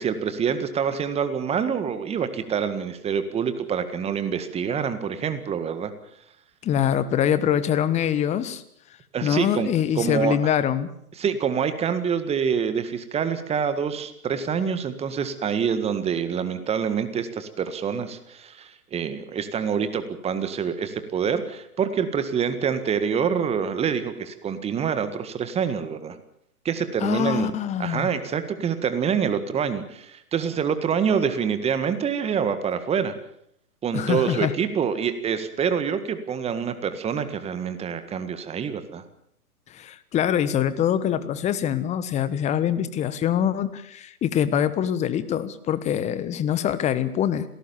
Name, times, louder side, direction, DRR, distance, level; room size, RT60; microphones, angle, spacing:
voice 1, 0.0-5.9 9.1-9.7 10.0-10.4 11.2-26.2 26.7-27.5 27.8-33.1 33.8-39.0, right 7 dB, 15° right, 11 dB, 1.7 m, -26 dB
voice 2, 6.6-8.6 9.2-10.9 27.0-28.1 33.9-34.5 39.7-47.4, left 9 dB, 15° left, 14 dB, 1.2 m, -24 dB
27.0 x 17.5 x 7.2 m, 0.72 s
figure-of-eight pair, 120°, 46 cm